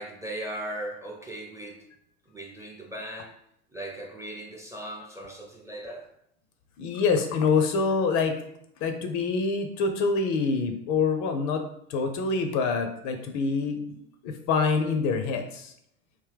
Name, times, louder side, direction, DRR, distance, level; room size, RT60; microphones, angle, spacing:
voice 1, 0.0-1.8 2.3-3.4 3.7-6.1, right 1 dB, 10° right, 1 dB, 0.6 m, -38 dB
voice 2, 6.8-8.4 8.8-11.6 11.9-13.8 14.2-15.7, left 4 dB, 45° left, 6 dB, 0.5 m, -26 dB
3.6 x 2.5 x 3.4 m, 0.73 s
figure-of-eight pair, 75°, 41 cm